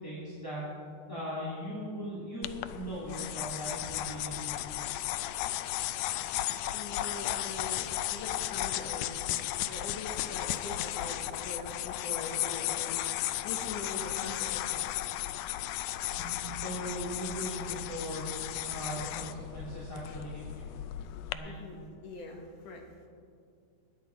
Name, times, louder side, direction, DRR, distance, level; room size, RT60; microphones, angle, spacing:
voice 1, 0.0-0.8 1.1-4.6 16.2-18.3 18.6-20.7 21.3-21.5, equal, 5° left, -9 dB, 2.4 m, -39 dB
sound 1, 2.4-21.3, left 14 dB, 80° left, 1.9 m, -35 dB
voice 2, 6.7-9.2 9.7-15.1 21.4-23.1, left 2 dB, 65° left, 1 dB, 3.2 m, -43 dB
22.0 x 10.0 x 4.7 m, 2.3 s
omnidirectional pair, 4.1 m